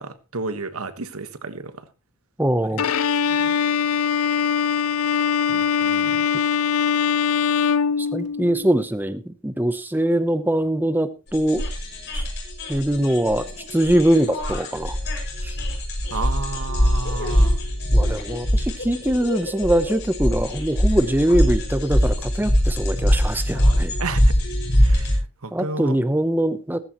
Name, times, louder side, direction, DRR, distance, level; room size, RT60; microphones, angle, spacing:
voice 1, 0.0-1.7 2.7-2.8 3.4-3.5 5.5-6.2 16.1-17.6 24.0-24.3 24.8-25.2 25.4-26.0, right 3 dB, 80° right, 11 dB, 1.4 m, -32 dB
voice 2, 2.4-2.8 8.0-11.6 12.1-12.2 12.7-14.9 15.4-15.5 17.9-23.9 25.5-26.8, right 1 dB, 10° right, 11 dB, 0.7 m, -22 dB
Bowed string instrument, 2.8-8.7, left 7 dB, 85° left, 0.6 m, -22 dB
sound 1, 11.3-25.2, equal, 50° left, 6.0 m, -22 dB
15.5 x 14.0 x 3.0 m, 0.29 s
head